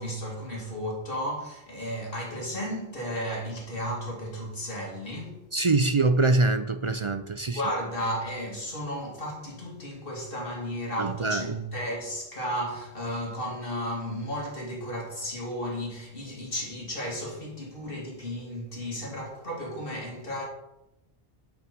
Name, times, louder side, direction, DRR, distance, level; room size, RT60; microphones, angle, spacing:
voice 1, 0.0-5.4 7.5-20.4, equal, 65° left, 2.9 m, -34 dB
voice 2, 5.5-7.6 11.0-11.5, right 3 dB, 40° right, 0.4 m, -24 dB
8.7 x 6.1 x 6.0 m
omnidirectional pair, 1.0 m